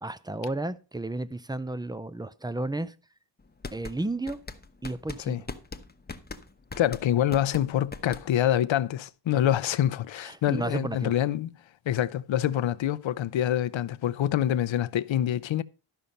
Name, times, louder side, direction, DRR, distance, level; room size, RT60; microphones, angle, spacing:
voice 1, 0.0-2.9 3.7-4.4 4.8-5.4 10.2-11.1, right 2 dB, 10° right, 0.5 m, -32 dB
sound 1, 3.4-8.6, left 3 dB, 20° left, 0.9 m, -41 dB
voice 2, 6.8-11.5 11.9-15.6, left 11 dB, 80° left, 0.6 m, -26 dB
12.5 x 5.7 x 5.1 m
wide cardioid pair, 105°, 45 cm